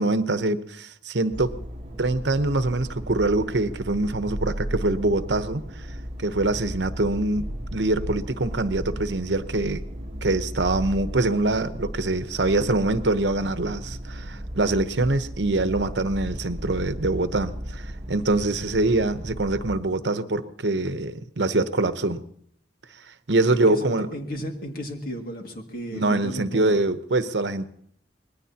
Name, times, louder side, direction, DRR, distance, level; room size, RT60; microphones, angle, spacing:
voice 1, 0.0-1.6 2.0-5.6 6.2-9.8 10.2-22.2 23.3-24.1 25.9-27.7, right 2 dB, 80° right, 0.9 m, -24 dB
sound 1, 1.3-19.8, equal, 40° right, 1.4 m, -35 dB
voice 2, 23.5-26.8, equal, 55° left, 2.2 m, -34 dB
24.5 x 20.0 x 2.9 m
head